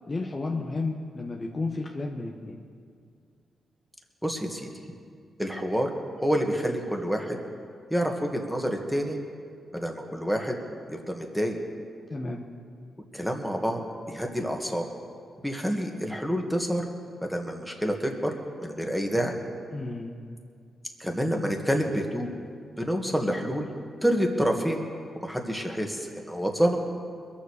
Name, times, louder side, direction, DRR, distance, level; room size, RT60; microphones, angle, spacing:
voice 1, 0.1-2.6 12.1-12.5 19.7-20.1, left 3 dB, 35° left, 1 dB, 1.2 m, -32 dB
voice 2, 4.2-4.7 5.4-5.9 6.2-7.4 7.9-9.2 9.7-10.6 10.9-11.6 13.1-13.8 14.1-14.9 15.4-16.9 17.3-18.3 18.6-19.4 21.0-22.3 22.8-23.7 24.0-24.8 25.2-26.8, equal, ahead, 2 dB, 2.1 m, -28 dB
21.5 x 7.4 x 6.6 m, 2.3 s
cardioid pair, 65°, 0 cm